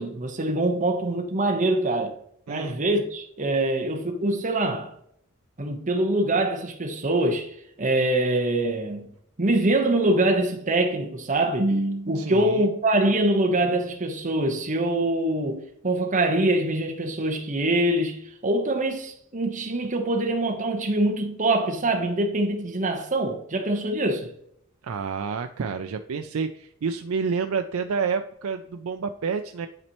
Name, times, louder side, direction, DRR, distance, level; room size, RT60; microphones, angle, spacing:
voice 1, 0.0-2.1 2.5-4.9 5.6-9.1 9.4-24.3, right 1 dB, 40° right, 1.0 m, -24 dB
voice 2, 2.5-2.8 12.1-12.7 24.8-29.7, right 5 dB, 80° right, 0.4 m, -29 dB
10.5 x 4.2 x 3.0 m
head